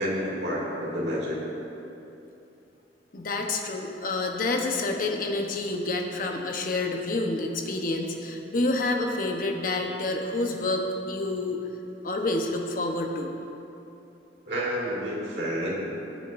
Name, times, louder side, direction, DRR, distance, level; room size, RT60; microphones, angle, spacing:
voice 1, 0.0-1.4 14.4-15.7, equal, 65° right, -5 dB, 2.5 m, -29 dB
voice 2, 3.1-11.6 12.0-13.3, left 2 dB, 50° left, 2 dB, 1.0 m, -28 dB
18.5 x 7.3 x 2.6 m, 2.9 s
head